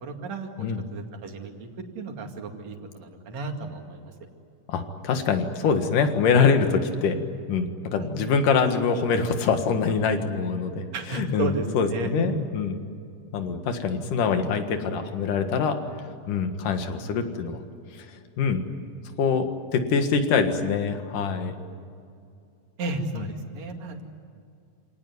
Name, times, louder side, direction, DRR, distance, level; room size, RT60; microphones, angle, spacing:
voice 1, 0.0-1.7 2.0-4.1 8.0-8.3 10.9-12.3 22.8-24.0, right 3 dB, 60° right, 3 dB, 3.5 m, -33 dB
voice 2, 4.7-10.8 11.1-12.8 13.3-15.8 16.3-17.6 17.9-18.1 18.4-18.6 19.2-21.5 23.2-23.3, left 5 dB, 80° left, 7 dB, 3.3 m, -24 dB
28.0 x 18.5 x 9.6 m, 2.4 s
omnidirectional pair, 3.6 m